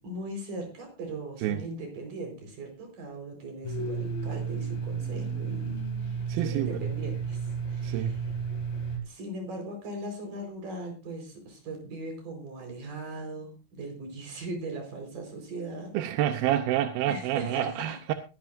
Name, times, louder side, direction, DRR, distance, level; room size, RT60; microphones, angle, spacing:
voice 1, 0.0-8.2 9.0-15.9 17.1-18.0, right 2 dB, 65° right, 6.0 m, -39 dB
Domestic sounds home sounds, 3.6-9.0, right 5 dB, 80° left, 4.2 m, -32 dB
voice 2, 6.3-6.9 7.8-8.2 15.9-18.1, right 11 dB, 90° right, 2.7 m, -28 dB
22.0 x 11.0 x 2.6 m
omnidirectional pair, 4.1 m